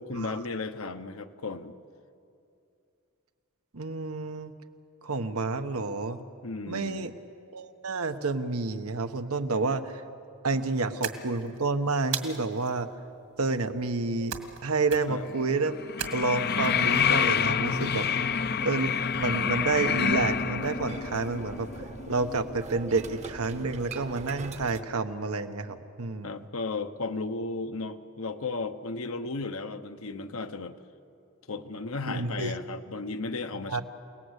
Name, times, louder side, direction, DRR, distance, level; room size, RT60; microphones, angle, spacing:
voice 1, 0.0-1.8 6.4-7.1 15.1-15.3 18.2-18.3 26.2-30.8 31.5-33.8, left 3 dB, 70° left, 8 dB, 1.0 m, -35 dB
voice 2, 3.7-4.5 5.0-6.2 6.7-7.1 7.5-10.0 10.4-12.9 13.4-15.8 16.1-18.1 18.6-18.9 19.2-21.7 22.1-26.4 32.1-32.5 33.7-33.8, right 3 dB, 90° right, 7 dB, 1.2 m, -29 dB
sound 1, 11.0-11.6 12.1-12.7 14.3-14.6 14.9-15.3 16.0-16.7, right 8 dB, 70° right, 2.2 m, -36 dB
sound 2, 15.2-23.6 23.8-23.9, left 7 dB, 50° left, 0.6 m, -28 dB
sound 3, 19.2-24.8, right 3 dB, 30° right, 0.9 m, -43 dB
29.0 x 18.5 x 8.2 m, 2.7 s
head